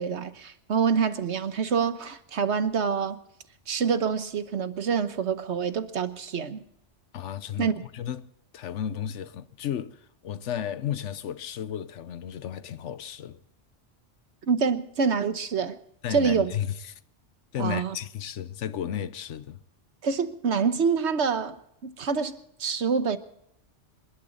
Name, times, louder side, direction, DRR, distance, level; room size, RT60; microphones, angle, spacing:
voice 1, 0.0-3.2 3.7-6.6 7.6-7.7 14.5-15.8 16.1-16.5 17.6-17.9 20.0-21.6 21.8-23.2, right 6 dB, 70° right, 1.3 m, -26 dB
voice 2, 7.1-8.3 8.5-13.4 16.0-17.0 17.5-19.6, left 9 dB, 85° left, 1.1 m, -33 dB
27.0 x 12.0 x 3.9 m
omnidirectional pair, 1.2 m